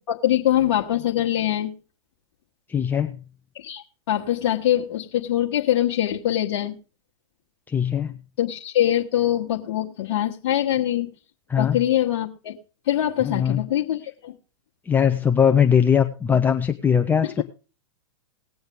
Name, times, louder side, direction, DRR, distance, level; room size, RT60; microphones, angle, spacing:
voice 1, 0.1-1.7 3.5-6.7 8.4-11.1 11.6-12.6 12.9-14.3 17.2-17.4, left 12 dB, 55° left, -1 dB, 1.4 m, -23 dB
voice 2, 2.7-3.1 7.7-8.1 11.5-11.8 13.2-13.6 14.9-17.4, left 7 dB, 10° left, 5 dB, 0.7 m, -20 dB
19.5 x 7.9 x 3.6 m, 0.35 s
hypercardioid pair, 105°, 15 cm